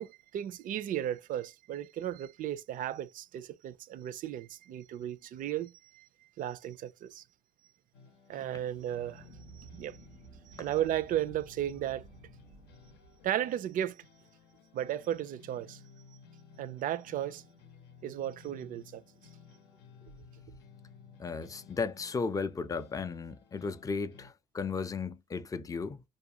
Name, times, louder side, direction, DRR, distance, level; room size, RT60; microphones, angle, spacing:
voice 1, 0.0-6.1 6.4-7.2 8.3-9.3 9.6-10.0 10.5-12.0 13.2-14.0 14.7-15.8 16.6-17.4 18.0-19.0, right 11 dB, 55° right, 0.4 m, -35 dB
sound 1, 7.9-24.3, left 6 dB, 90° left, 0.6 m, -57 dB
sound 2, 8.7-13.5, right 5 dB, 85° right, 0.7 m, -55 dB
voice 2, 21.2-26.0, left 4 dB, 20° left, 0.4 m, -35 dB
2.5 x 2.2 x 2.8 m
cardioid pair, 110°, 17 cm